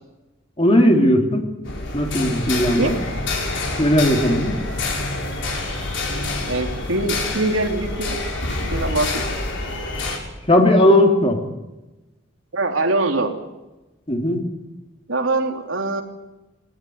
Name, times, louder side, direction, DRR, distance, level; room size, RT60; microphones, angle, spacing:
voice 1, 0.6-1.5 1.9-3.0 3.8-4.5 10.5-11.4 14.1-14.5, left 1 dB, 30° left, 3 dB, 3.3 m, -17 dB
sound 1, 1.6-10.2, left 2 dB, 65° left, 6.1 m, -27 dB
voice 2, 6.4-8.2 8.7-9.2 12.5-13.3 15.1-16.0, right 2 dB, 85° right, 4 dB, 3.3 m, -23 dB
20.5 x 18.5 x 9.6 m, 1.0 s
head